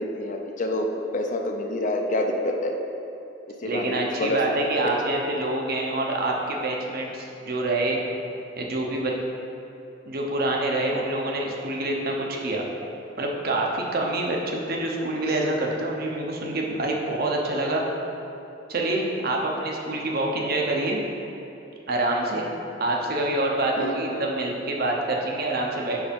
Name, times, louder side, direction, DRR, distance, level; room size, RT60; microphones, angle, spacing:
voice 1, 0.0-2.8 3.5-4.4 4.8-5.0 10.8-10.9 23.8-24.0, left 1 dB, 45° left, 3 dB, 0.6 m, -28 dB
voice 2, 3.6-8.0 8.6-9.1 10.1-12.7 13.2-17.8 18.7-21.0 21.9-22.5 22.8-26.0, right 2 dB, 55° right, -1 dB, 0.9 m, -26 dB
5.3 x 4.9 x 5.2 m, 3.0 s
head